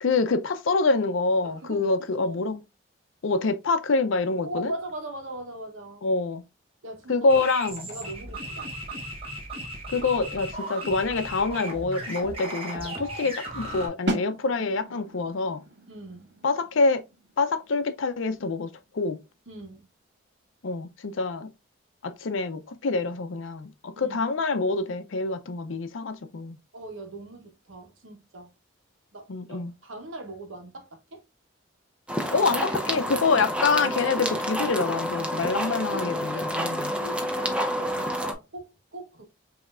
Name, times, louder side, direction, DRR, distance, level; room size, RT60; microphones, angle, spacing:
voice 1, 0.0-2.6 3.2-4.7 6.0-6.4 7.1-7.9 9.9-15.6 16.4-17.0 17.4-19.2 20.6-21.5 22.0-26.6 29.3-29.7 32.3-36.9, left 3 dB, 80° left, 0.6 m, -26 dB
voice 2, 1.4-1.9 2.2-2.5 4.4-6.1 6.8-7.4 7.9-8.7 15.9-16.3 19.5-19.9 24.0-24.2 26.7-28.5 29.1-31.2 35.9-36.4 37.0-39.2, right 1 dB, 85° right, 1.2 m, -40 dB
sound 1, 7.3-13.9, right 1 dB, 30° right, 1.3 m, -36 dB
sound 2, 14.1-19.8, right 1 dB, 60° right, 1.2 m, -37 dB
sound 3, 32.1-38.3, equal, 5° right, 0.5 m, -29 dB
5.3 x 2.9 x 2.4 m
head